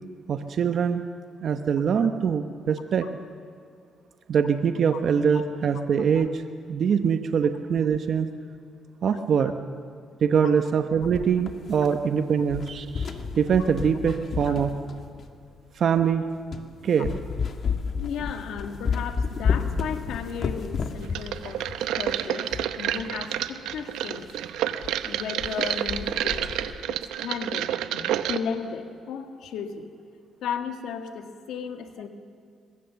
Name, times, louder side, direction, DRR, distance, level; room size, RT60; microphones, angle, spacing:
voice 1, 0.3-1.0 1.4-3.1 4.3-6.4 6.7-8.3 9.0-9.5 10.2-14.7 15.8-16.2 16.8-17.2, right 7 dB, 60° right, 7 dB, 1.0 m, -23 dB
sound 1, 11.0-12.1 12.4-15.4 16.0-16.1 16.5-16.7 17.0-23.1 23.4-23.5 23.7-23.8 24.2-24.4 24.8-25.0 25.2-25.6 25.9-26.8, left 6 dB, 55° left, 1.6 m, -31 dB
voice 2, 18.0-24.3 25.1-26.5 26.9-29.9 30.4-32.1, left 7 dB, 80° left, 6 dB, 1.8 m, -35 dB
sound 2, 21.1-28.4, right 11 dB, 90° right, 0.8 m, -29 dB
22.0 x 22.0 x 7.0 m, 2.2 s
cardioid pair, 90°, 0 cm